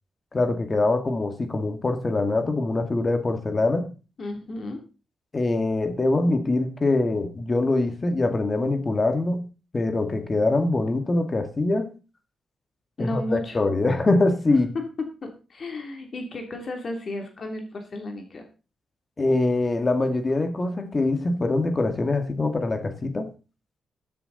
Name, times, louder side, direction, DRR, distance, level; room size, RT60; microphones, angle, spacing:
voice 1, 0.3-3.9 5.3-9.5 9.7-11.9 13.0-14.7 19.2-23.3, left 2 dB, 25° left, 7 dB, 1.9 m, -23 dB
voice 2, 4.2-4.8 13.0-13.6 14.5-18.4, left 2 dB, 40° left, 4 dB, 3.1 m, -33 dB
14.5 x 10.5 x 4.1 m, 0.33 s
wide cardioid pair, 145°, 0 cm